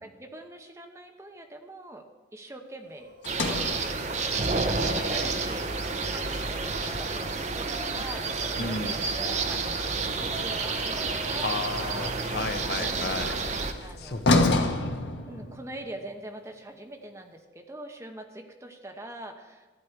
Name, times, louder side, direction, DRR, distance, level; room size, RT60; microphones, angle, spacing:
voice 1, 0.0-2.0 2.3-11.5 11.8-12.2 12.8-13.3 13.8-14.2 15.3-19.7, right 1 dB, 15° right, 3 dB, 0.9 m, -43 dB
sound 1, 2.9-3.5 3.8-5.6 6.4-13.6, equal, 55° right, 4.2 m, -46 dB
Sliding door, 3.2-7.5 11.0-15.9, left 2 dB, 80° left, 1.3 m, -31 dB
sound 2, 3.2-13.7, right 3 dB, 40° right, 0.8 m, -30 dB
voice 2, 8.6-9.0 11.4-13.4 13.7-14.9, left 3 dB, 60° left, 7 dB, 0.9 m, -34 dB
14.0 x 9.9 x 4.6 m, 1.3 s
head